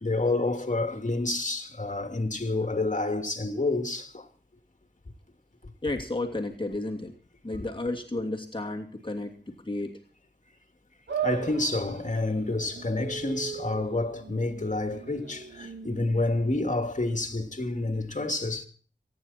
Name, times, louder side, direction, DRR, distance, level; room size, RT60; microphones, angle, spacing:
voice 1, 0.0-4.3 11.2-18.7, left 2 dB, 45° left, 2.7 m, -29 dB
voice 2, 5.8-7.1 7.4-10.0, left 2 dB, 30° left, 2.7 m, -32 dB
sound 1, 11.1-17.5, right 7 dB, 80° right, 2.2 m, -38 dB
25.5 x 10.0 x 4.3 m
cardioid pair, 40°, 18 cm